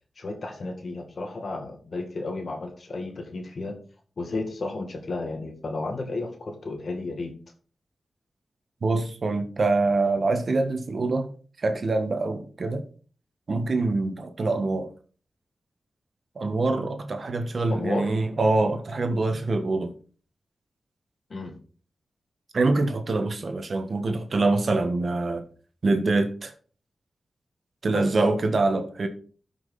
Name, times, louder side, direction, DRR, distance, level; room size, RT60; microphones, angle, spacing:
voice 1, 0.2-3.7 4.2-7.3 17.7-18.1 21.3-21.5 27.9-28.1, left 2 dB, 60° left, 2.0 m, -32 dB
voice 2, 8.8-11.3 11.6-12.8 13.5-14.9 16.3-19.9 22.5-25.4 25.8-26.5 27.8-29.1, right 3 dB, 55° right, 1.4 m, -25 dB
13.0 x 6.0 x 4.2 m
wide cardioid pair, 85°, 0 cm